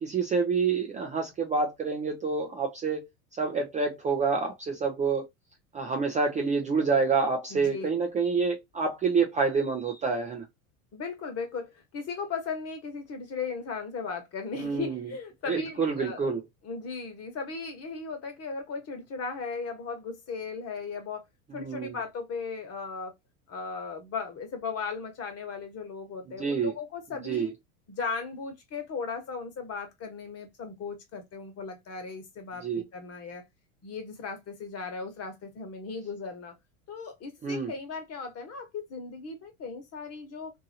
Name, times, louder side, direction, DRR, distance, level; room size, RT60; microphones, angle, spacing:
voice 1, 0.0-3.1 3.4-5.3 5.7-10.5 14.6-15.1 15.5-16.4 21.5-22.0 26.4-26.7 27.2-27.5 32.6-32.8 37.4-37.7, right 4 dB, 20° right, 0.4 m, -27 dB
voice 2, 7.5-7.9 10.9-16.2 16.6-21.2 21.5-23.1 23.5-27.5 27.9-33.4 33.8-36.5 36.9-40.5, left 5 dB, 35° left, 1.2 m, -37 dB
2.8 x 2.7 x 2.6 m
hypercardioid pair, 100°, 43 cm